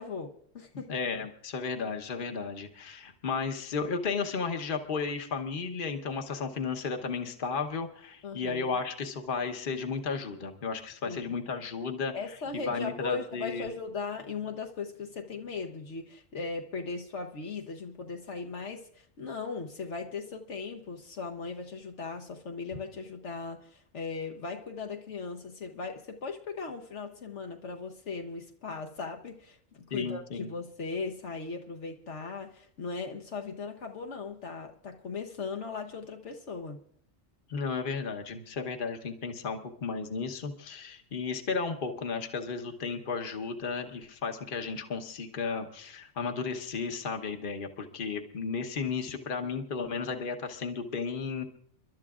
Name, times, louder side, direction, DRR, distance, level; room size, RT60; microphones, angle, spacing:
voice 1, 0.0-0.9 8.2-8.8 11.0-11.4 12.1-36.8, left 4 dB, 65° left, 2 dB, 1.2 m, -38 dB
voice 2, 0.7-12.1 12.7-13.7 29.9-30.5 37.5-51.4, left 5 dB, 45° left, 4 dB, 1.2 m, -34 dB
30.0 x 12.0 x 2.5 m, 0.63 s
omnidirectional pair, 1.3 m